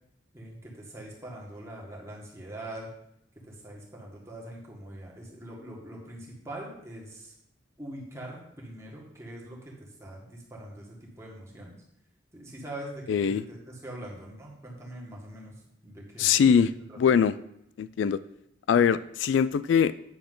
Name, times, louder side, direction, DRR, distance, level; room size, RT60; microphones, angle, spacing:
voice 1, 0.3-2.9 3.4-7.3 7.8-11.7 12.3-16.3 16.9-17.0, right 1 dB, 15° right, -3 dB, 1.7 m, -43 dB
voice 2, 13.1-13.4 16.2-16.7 17.0-17.3 17.8-18.2 18.7-19.9, left 7 dB, 75° left, 16 dB, 0.3 m, -22 dB
9.6 x 6.6 x 3.8 m, 0.79 s
head